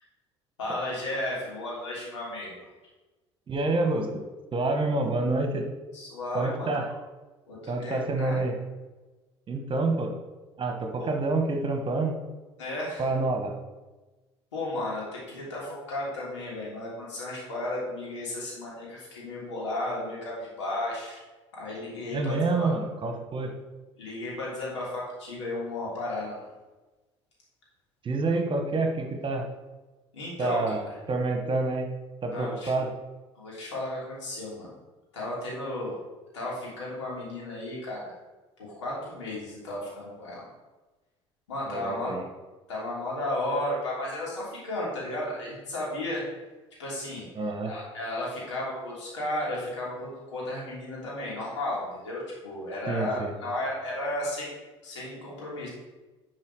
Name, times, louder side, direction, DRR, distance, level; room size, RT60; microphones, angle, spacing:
voice 1, 0.6-2.6 5.9-6.7 7.5-8.4 11.0-11.1 12.6-13.1 14.5-21.2 21.5-22.7 24.0-26.4 30.1-30.7 32.3-32.7 33.3-34.7 35.1-36.0 36.3-38.1 38.6-40.5 41.5-42.1 42.7-46.2 46.8-47.3 47.6-54.5 54.8-55.7, left 1 dB, 80° left, -5 dB, 3.1 m, -34 dB
voice 2, 3.5-4.1 4.5-5.7 6.3-6.9 7.7-8.5 9.5-10.1 10.6-12.2 13.0-13.5 22.1-23.5 28.0-29.5 30.4-31.9 32.2-32.9 41.7-42.3 47.3-47.7 52.9-53.3, right 3 dB, 35° right, 4 dB, 1.6 m, -28 dB
10.5 x 4.8 x 4.9 m, 1.2 s
figure-of-eight pair, 60°, 15 cm